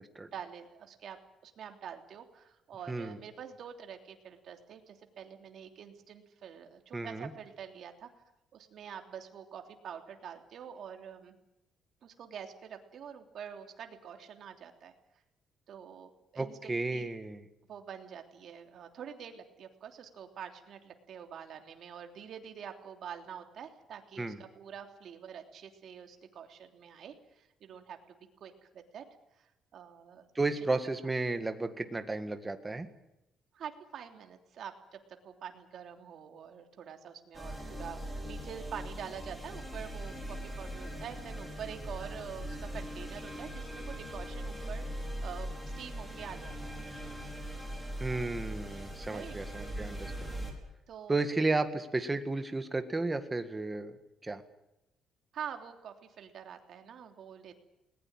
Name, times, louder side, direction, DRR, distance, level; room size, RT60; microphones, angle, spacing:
voice 1, 0.3-8.1 8.5-11.3 12.0-14.9 15.7-17.1 17.7-29.0 29.3-30.3 33.5-35.0 35.2-46.8 49.1-49.4 50.9-51.2 55.3-57.6, right 8 dB, 50° right, 4 dB, 3.1 m, -46 dB
voice 2, 2.9-3.2 6.9-7.3 16.4-17.5 24.2-24.4 30.4-32.9 48.0-50.3 51.1-54.0 54.2-54.4, right 3 dB, 15° right, 8 dB, 1.8 m, -33 dB
sound 1, 37.3-50.5, equal, ahead, 4.8 m, -40 dB
20.5 x 20.0 x 9.0 m, 0.87 s
cardioid pair, 170°, 0 cm